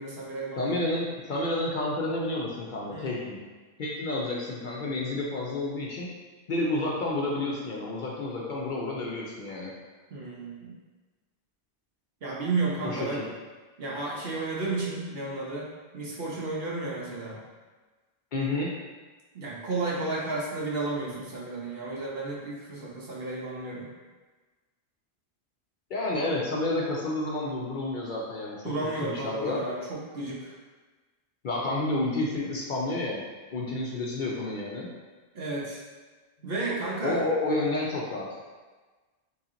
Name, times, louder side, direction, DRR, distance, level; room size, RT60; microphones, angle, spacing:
voice 1, 0.0-0.8 2.9-3.2 10.1-10.8 12.2-13.2 13.8-17.4 19.3-23.9 28.6-30.5 35.3-35.8 36.4-37.2, right 3 dB, 65° right, -4 dB, 1.0 m, -32 dB
voice 2, 0.6-3.4 3.8-6.1 6.5-9.7 12.8-13.2 18.3-18.7 25.9-28.7 29.0-29.6 31.4-33.2 33.5-34.9 36.4-36.5 37.0-38.4, left 2 dB, 55° left, -4 dB, 0.6 m, -30 dB
3.0 x 2.8 x 3.7 m, 1.3 s
omnidirectional pair, 1.1 m